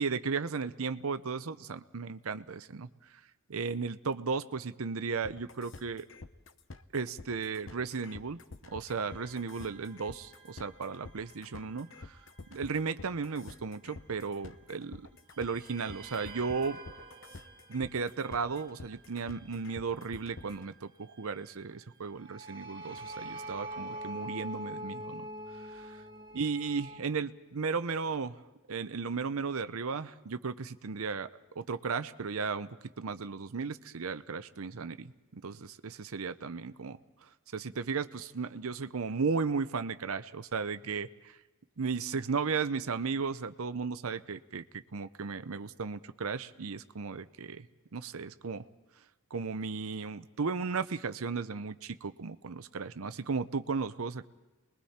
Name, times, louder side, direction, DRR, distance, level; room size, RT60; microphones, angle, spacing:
voice 1, 0.0-2.9 3.5-6.1 6.9-8.4 8.7-12.2 12.5-15.0 15.4-16.8 17.7-25.3 25.6-26.0 26.3-28.4 28.7-31.3 31.5-32.7 33.0-37.0 37.5-41.4 41.8-47.7 47.9-48.7 49.3-54.3, right 5 dB, 75° right, 11 dB, 0.7 m, -35 dB
sound 1, 5.2-20.7, left 3 dB, 60° left, 0.8 m, -48 dB
sound 2, 9.0-14.9 15.3-27.0, right 1 dB, 35° right, 2.4 m, -47 dB
28.5 x 21.5 x 4.3 m, 1.1 s
head